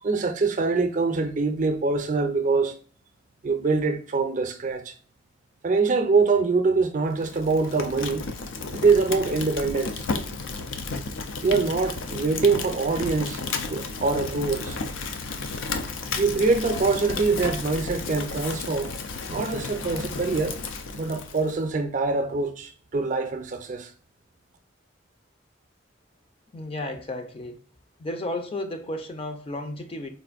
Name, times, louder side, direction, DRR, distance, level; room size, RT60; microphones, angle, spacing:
voice 1, 0.0-2.8 3.4-4.9 5.6-8.2 8.7-10.0 11.4-13.4 13.7-14.8 16.2-18.9 19.3-20.6 21.0-23.9, right 4 dB, 40° right, 0.4 m, -24 dB
Fire, 7.2-21.6, left 4 dB, 90° left, 0.5 m, -33 dB
voice 2, 26.5-27.6 28.0-30.1, left 1 dB, 30° left, 0.4 m, -33 dB
4.1 x 2.5 x 2.4 m
head